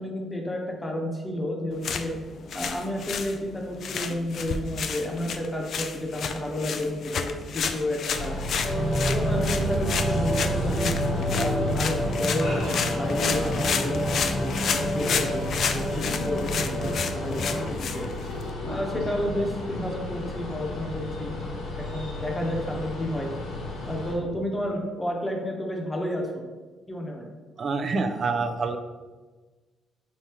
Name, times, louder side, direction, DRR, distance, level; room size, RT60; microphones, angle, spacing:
voice 1, 0.0-2.1 2.5-8.3 9.1-10.9 11.3-14.6 14.9-17.6 17.9-18.1 18.6-21.3 21.9-23.3 23.8-26.4 26.9-27.3, left 1 dB, 15° left, 0 dB, 0.9 m, -31 dB
sound 1, 1.7-18.5, left 6 dB, 65° left, 0.3 m, -32 dB
sound 2, 8.1-24.1, equal, 80° left, 1.1 m, -32 dB
sound 3, 8.6-17.6, equal, 35° left, 1.1 m, -29 dB
voice 2, 27.6-28.8, right 4 dB, 45° right, 8 dB, 0.4 m, -26 dB
4.2 x 3.6 x 2.9 m, 1.3 s
cardioid pair, 90°, 0 cm